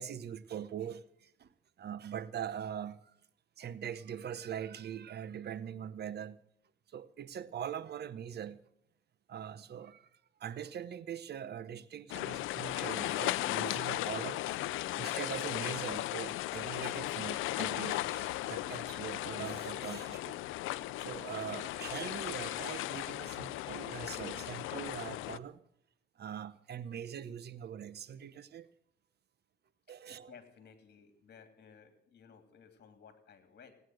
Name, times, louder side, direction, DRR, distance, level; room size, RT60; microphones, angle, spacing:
voice 1, 0.0-1.5 1.8-3.2 3.6-6.4 6.9-8.6 9.3-10.1 10.4-20.4 21.0-25.6 26.2-28.7 29.9-30.3, right 9 dB, 55° right, 0.8 m, -42 dB
sound 1, 12.1-25.4, left 16 dB, 90° left, 0.5 m, -36 dB
voice 2, 30.1-33.7, left 6 dB, 55° left, 2.9 m, -57 dB
17.5 x 9.6 x 7.8 m
cardioid pair, 90°, 20 cm